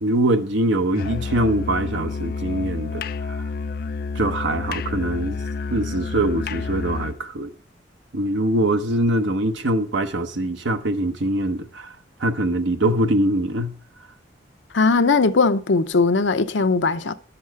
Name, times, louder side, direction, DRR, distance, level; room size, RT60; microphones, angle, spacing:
voice 1, 0.0-3.4 4.1-5.4 5.7-7.5 8.1-11.9 12.2-13.7, right 1 dB, 90° right, 0.9 m, -23 dB
Musical instrument, 0.9-7.2, left 5 dB, 50° left, 0.4 m, -29 dB
voice 2, 14.7-17.1, left 4 dB, 85° left, 0.7 m, -19 dB
11.5 x 7.1 x 4.7 m
head